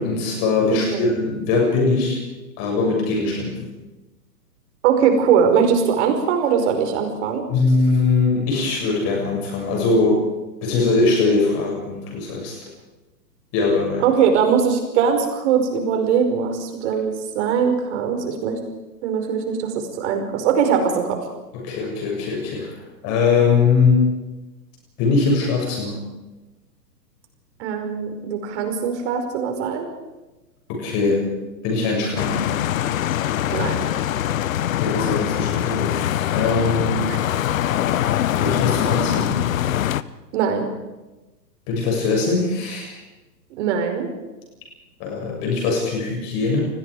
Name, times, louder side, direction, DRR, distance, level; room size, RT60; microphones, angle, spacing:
voice 1, 0.0-2.2 2.6-3.7 7.5-10.3 10.6-12.6 13.5-14.1 21.5-22.8 23.0-24.1 25.0-26.0 30.7-31.3 31.6-32.5 34.8-36.0 36.3-37.1 38.4-39.4 41.7-43.0 45.0-46.6, left 3 dB, 30° left, 0 dB, 6.8 m, -21 dB
voice 2, 0.7-1.0 4.8-7.4 14.0-18.6 19.0-21.2 27.6-29.9 33.5-33.9 37.1-37.2 40.3-40.7 43.6-44.1, right 7 dB, 40° right, 5 dB, 5.4 m, -21 dB
sound 1, 32.2-40.0, left 11 dB, 55° left, 1.0 m, -23 dB
29.5 x 20.0 x 5.0 m, 1.1 s
hypercardioid pair, 140°, 50 cm